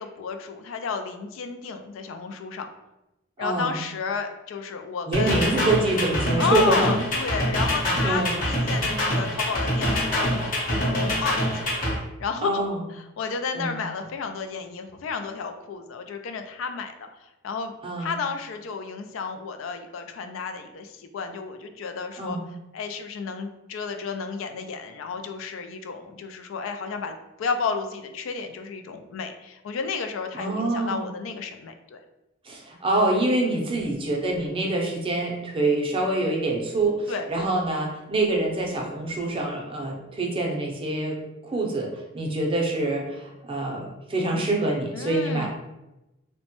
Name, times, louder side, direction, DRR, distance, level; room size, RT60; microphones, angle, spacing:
voice 1, 0.0-2.7 3.4-5.4 6.4-11.6 12.2-12.6 12.9-17.7 18.0-22.4 22.7-32.0 37.1-37.3 44.9-45.5, left 5 dB, 75° left, 7 dB, 0.3 m, -32 dB
voice 2, 3.4-3.7 5.1-7.0 7.8-8.3 12.4-12.8 13.5-13.8 17.8-18.1 22.2-22.4 30.3-31.1 32.5-45.5, right 2 dB, 25° right, 0 dB, 0.5 m, -26 dB
sound 1, 5.1-12.0, equal, 45° left, 0.9 m, -25 dB
3.0 x 2.1 x 2.9 m, 0.95 s
head